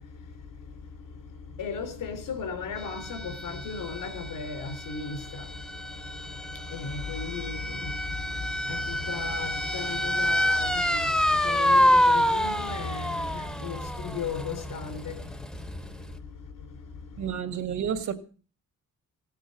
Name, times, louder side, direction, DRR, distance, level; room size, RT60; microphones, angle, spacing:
voice 1, 0.0-17.4, left 5 dB, 90° left, 4.0 m, -37 dB
sound 1, 2.8-16.1, equal, ahead, 0.8 m, -28 dB
voice 2, 17.2-18.1, right 8 dB, 65° right, 2.2 m, -30 dB
17.0 x 9.1 x 7.9 m
wide cardioid pair, 160°, 32 cm